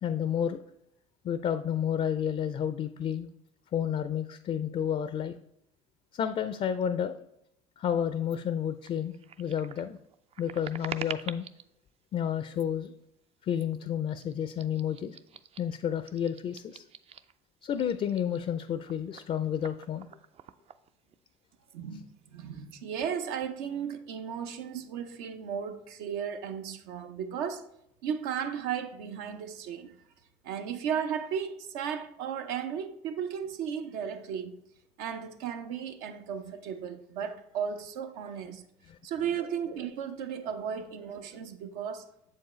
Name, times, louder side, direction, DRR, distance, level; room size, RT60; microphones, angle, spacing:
voice 1, 0.0-0.6 1.2-3.3 3.7-5.3 6.1-7.2 7.8-10.0 10.4-11.4 12.1-12.9 13.4-15.2 15.6-16.8 17.6-20.1 38.9-39.0, left 9 dB, 40° left, 0.4 m, -31 dB
sound 1, 8.3-8.4 8.8-11.7 12.5-12.9 13.5-13.8 14.1-17.4 17.7-21.3 21.6-21.8 22.1-22.8, right 8 dB, 40° right, 0.3 m, -46 dB
voice 2, 21.7-27.7 28.0-30.0 30.4-34.6 35.0-38.6 39.0-42.1, right 8 dB, 80° right, 0.6 m, -35 dB
7.2 x 4.6 x 3.1 m
supercardioid pair, 80°, 16 cm